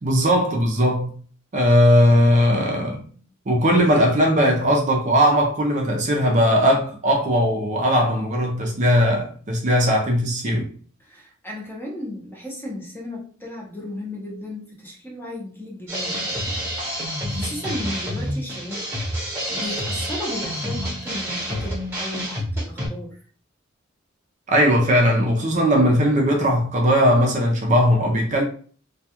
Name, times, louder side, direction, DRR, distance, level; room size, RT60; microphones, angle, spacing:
voice 1, 0.0-1.1 1.5-3.0 3.5-10.7 24.5-28.4, equal, 35° right, 0.5 m, -18 dB
voice 2, 11.0-16.7 16.9-18.9 19.1-23.2, left 1 dB, 10° left, 0.7 m, -35 dB
sound 1, 15.9-22.9, equal, 10° right, 1.0 m, -28 dB
2.2 x 2.2 x 2.8 m
head